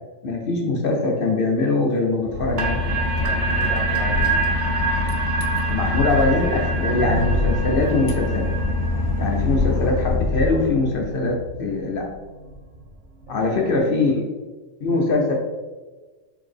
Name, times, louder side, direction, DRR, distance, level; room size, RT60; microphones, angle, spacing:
voice 1, 0.2-2.8 5.7-8.5 9.2-12.1 13.3-14.3 14.8-15.3, left 3 dB, 55° left, 0 dB, 0.7 m, -22 dB
Boat Water vehicle / Engine, 2.2-11.2, left 2 dB, 75° left, 0.9 m, -25 dB
sound 1, 2.3-12.9 13.2-13.4, right 3 dB, 65° right, 1.0 m, -27 dB
voice 2, 3.2-4.4 13.3-13.7 14.8-15.1, right 1 dB, 85° right, -4 dB, 1.1 m, -35 dB
3.8 x 3.4 x 3.4 m, 1.3 s
omnidirectional pair, 1.4 m